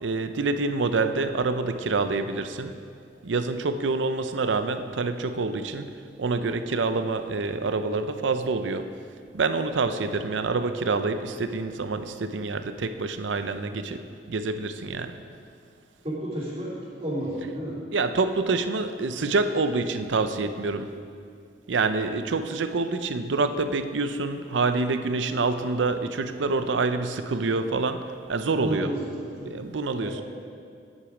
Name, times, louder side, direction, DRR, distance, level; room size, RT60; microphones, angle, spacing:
voice 1, 0.0-2.8 3.2-8.9 9.3-14.0 14.3-15.2 17.9-20.9 21.7-28.9 29.4-30.2, right 3 dB, 85° right, 9 dB, 0.6 m, -27 dB
voice 2, 16.0-17.8 28.6-29.5 30.0-30.2, right 1 dB, 35° right, -6 dB, 2.7 m, -32 dB
10.0 x 8.3 x 5.0 m, 2.3 s
head